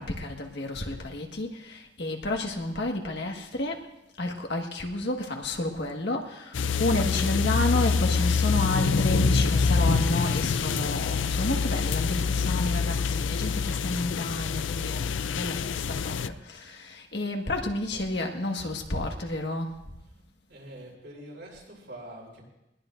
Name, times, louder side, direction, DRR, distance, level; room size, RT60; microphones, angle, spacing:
voice 1, 0.0-3.8 4.2-19.7, left 2 dB, 65° left, 2 dB, 1.7 m, -31 dB
sound 1, 6.5-16.3, left 5 dB, 85° left, 0.5 m, -26 dB
voice 2, 20.5-22.4, right 1 dB, 70° right, -3 dB, 5.3 m, -44 dB
20.5 x 18.5 x 2.6 m, 0.91 s
head